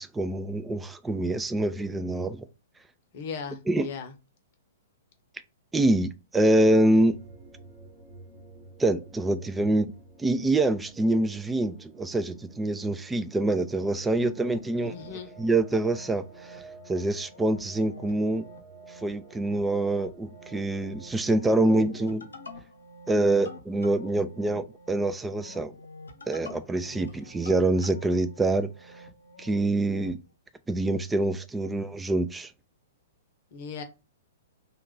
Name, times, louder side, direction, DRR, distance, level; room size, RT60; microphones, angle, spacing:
voice 1, 0.0-2.5 3.7-3.9 5.7-7.2 8.8-9.9 10.2-14.9 15.4-16.6 16.9-18.5 19.0-22.3 23.1-25.7 26.3-28.7 29.4-30.2 30.7-32.5, right 2 dB, 10° right, 0.3 m, -25 dB
voice 2, 3.1-4.1 14.8-15.3 26.8-27.3 33.5-33.8, left 6 dB, 50° left, 0.8 m, -38 dB
sound 1, 6.4-21.4, right 3 dB, 35° right, 1.0 m, -51 dB
sound 2, 14.1-30.2, left 1 dB, 80° left, 0.8 m, -48 dB
2.9 x 2.3 x 3.7 m
figure-of-eight pair, 115°, 0 cm